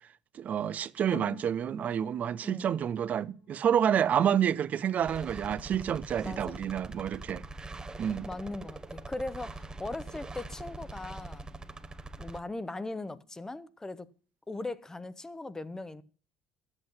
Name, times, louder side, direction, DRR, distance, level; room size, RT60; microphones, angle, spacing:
voice 1, 0.3-7.4 8.0-8.3, right 9 dB, 45° right, 0.6 m, -29 dB
sound 1, 1.1-9.7 10.4-10.5, left 5 dB, 65° left, 3.0 m, -52 dB
sound 2, 5.0-12.4, right 2 dB, 20° right, 0.9 m, -43 dB
voice 2, 6.2-6.6 8.3-11.5 12.2-14.1 14.5-16.0, left 2 dB, 15° left, 0.9 m, -39 dB
12.5 x 8.0 x 5.8 m
hypercardioid pair, 60°, 4 cm